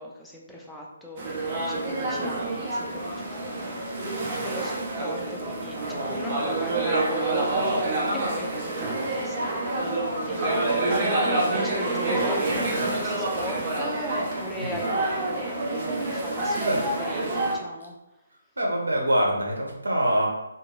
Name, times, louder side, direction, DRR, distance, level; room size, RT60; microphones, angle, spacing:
voice 1, 0.0-4.7 5.0-7.9 8.1-18.0, equal, 5° left, -3 dB, 0.5 m, -39 dB
sound 1, 1.2-17.6, right 2 dB, 40° right, 0.6 m, -27 dB
voice 2, 18.6-20.3, right 1 dB, 80° right, -1 dB, 0.8 m, -24 dB
2.6 x 2.5 x 3.0 m, 0.93 s
figure-of-eight pair, 140°, 0 cm